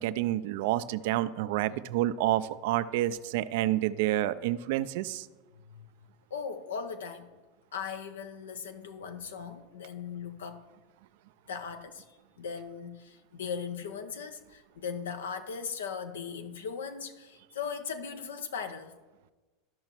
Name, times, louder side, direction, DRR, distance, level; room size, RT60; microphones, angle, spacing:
voice 1, 0.0-5.3, right 14 dB, 65° right, 0.3 m, -29 dB
voice 2, 6.3-7.3 7.7-10.7 11.5-12.0 12.4-19.0, left 6 dB, 80° left, 0.6 m, -38 dB
13.5 x 5.4 x 3.0 m
hypercardioid pair, 85°, 0 cm